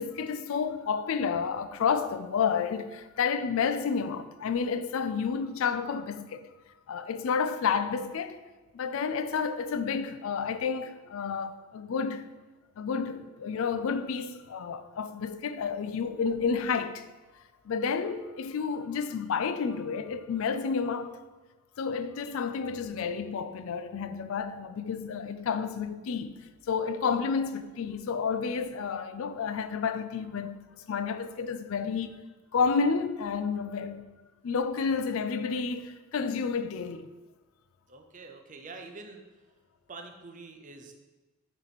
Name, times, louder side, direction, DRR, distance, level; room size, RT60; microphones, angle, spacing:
voice 1, 0.0-6.5 6.9-8.4 8.7-12.3 12.8-17.0 17.7-21.2 21.8-26.3 26.7-32.2 32.5-34.0 34.4-37.1, left 5 dB, 70° left, 0.4 m, -30 dB
voice 2, 22.4-22.9 37.9-39.2 39.9-40.9, right 3 dB, 35° right, 0.6 m, -46 dB
9.0 x 3.0 x 4.1 m
head